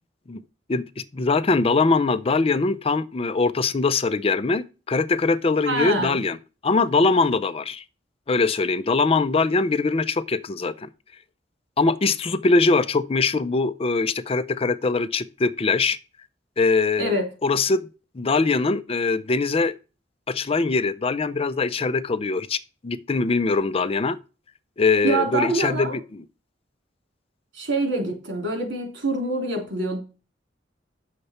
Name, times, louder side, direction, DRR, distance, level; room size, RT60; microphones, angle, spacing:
voice 1, 0.7-6.4 6.6-7.8 8.3-10.9 11.8-16.0 16.6-17.9 18.1-19.7 20.3-22.6 22.8-24.2 24.8-26.2, left 3 dB, 35° left, 0.5 m, -22 dB
voice 2, 5.6-6.2 17.0-17.3 25.0-26.0 27.5-30.0, right 2 dB, 90° right, 3.0 m, -25 dB
8.2 x 6.6 x 4.3 m
head